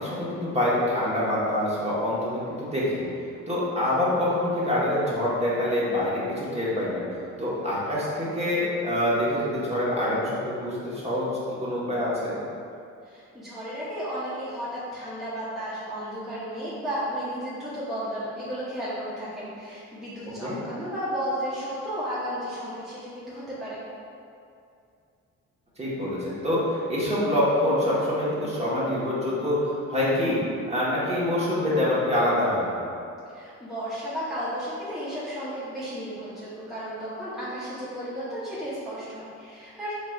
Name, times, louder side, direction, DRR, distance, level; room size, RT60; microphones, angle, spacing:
voice 1, 0.0-3.0 3.5-7.0 7.4-12.4 20.4-20.6 25.8-30.4 30.7-32.7, left 1 dB, 20° right, -8 dB, 1.1 m, -25 dB
voice 2, 13.0-23.8 33.3-39.9, equal, ahead, -11 dB, 0.9 m, -33 dB
4.6 x 3.2 x 2.3 m, 2.5 s
cardioid pair, 90°, 30 cm